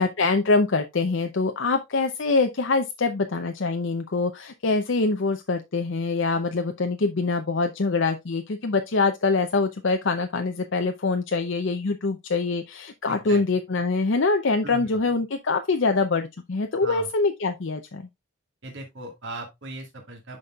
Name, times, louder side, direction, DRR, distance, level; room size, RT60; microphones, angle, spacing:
voice 1, 0.0-18.1, left 3 dB, 60° left, 0.6 m, -24 dB
voice 2, 13.1-13.4 14.6-14.9 16.8-17.1 18.6-20.4, right 2 dB, 60° right, 1.8 m, -38 dB
11.5 x 4.2 x 2.3 m
head